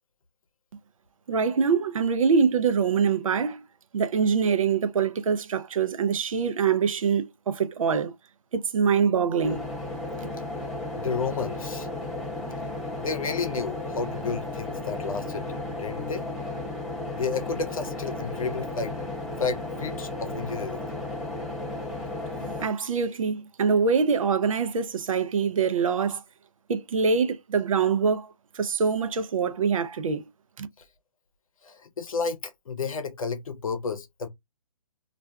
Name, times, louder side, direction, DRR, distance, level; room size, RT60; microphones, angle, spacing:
voice 1, 1.3-3.6 3.9-8.1 8.5-9.7 22.6-26.2 26.7-28.3 28.5-30.2 30.6-30.7, right 6 dB, 70° right, 0.5 m, -24 dB
sound 1, 9.4-22.7, left 2 dB, ahead, 0.7 m, -34 dB
voice 2, 10.9-11.9 13.0-16.3 17.1-20.9 31.6-34.3, left 5 dB, 80° left, 0.7 m, -32 dB
2.4 x 2.2 x 3.4 m
hypercardioid pair, 155°, 18 cm